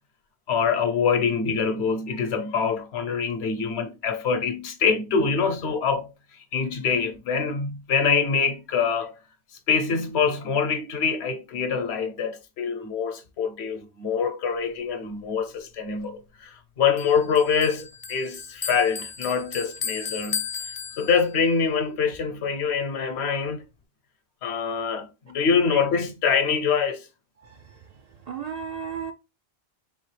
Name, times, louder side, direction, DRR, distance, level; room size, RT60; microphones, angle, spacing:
voice 1, 0.5-6.1 6.5-9.1 9.7-20.4 21.0-23.6 24.4-27.1, left 6 dB, 85° left, 1.0 m, -25 dB
Bell, 17.0-21.5, left 7 dB, 45° left, 0.5 m, -35 dB
voice 2, 27.4-29.1, right 7 dB, 55° right, 0.4 m, -36 dB
4.0 x 3.1 x 3.1 m
omnidirectional pair, 1.1 m